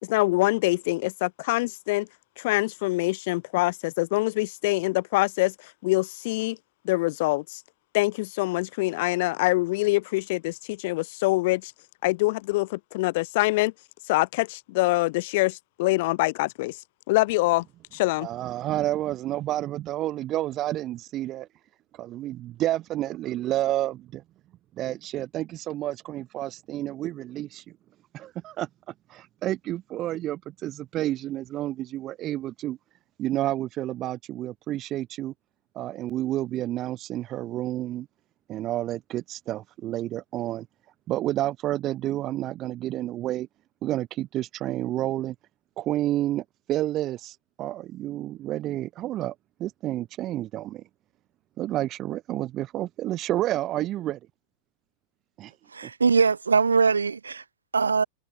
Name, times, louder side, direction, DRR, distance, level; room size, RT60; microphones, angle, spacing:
voice 1, 0.0-2.1 2.4-5.5 5.8-6.6 6.8-7.6 7.9-11.7 12.0-13.7 14.1-16.8 17.1-17.7 17.9-18.3, left 21 dB, 50° left, 2.0 m, -25 dB
voice 2, 18.2-21.5 22.0-24.2 24.7-27.6 28.1-28.7 29.1-32.8 33.2-35.3 35.7-38.1 38.5-40.7 41.1-43.5 43.8-45.3 45.8-49.3 49.6-50.8 51.6-54.2 55.4-55.5 55.8-55.9, right 14 dB, 35° right, 1.8 m, -30 dB
voice 3, 55.7-57.4 57.7-58.0, right 5 dB, 75° right, 3.2 m, -22 dB
figure-of-eight pair, 90°, 0 cm